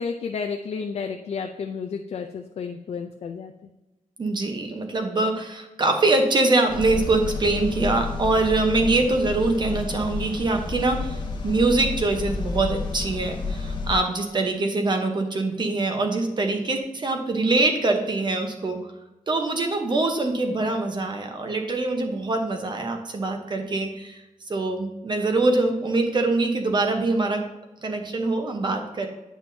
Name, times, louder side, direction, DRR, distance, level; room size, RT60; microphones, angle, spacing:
voice 1, 0.0-3.5, left 5 dB, 50° left, 5 dB, 0.5 m, -31 dB
voice 2, 4.2-18.8 19.3-24.2 24.5-27.4 27.8-29.1, right 2 dB, 35° right, 4 dB, 1.0 m, -24 dB
sound 1, 6.7-14.0, left 4 dB, 35° left, 0.9 m, -31 dB
9.2 x 6.1 x 2.8 m, 0.99 s
wide cardioid pair, 165°, 14 cm